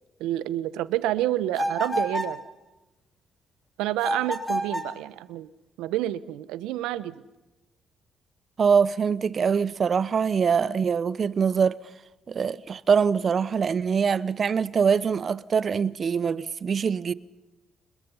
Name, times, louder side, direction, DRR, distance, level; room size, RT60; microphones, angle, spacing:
voice 1, 0.2-2.4 3.8-5.5 5.8-7.2, right 14 dB, 85° right, 0.9 m, -28 dB
sound 1, 1.6-2.4 4.0-5.0, equal, ahead, 5.5 m, -28 dB
voice 2, 8.6-11.8 12.3-17.1, right 6 dB, 50° right, 0.9 m, -23 dB
27.5 x 21.5 x 5.7 m
supercardioid pair, 55°, 0 cm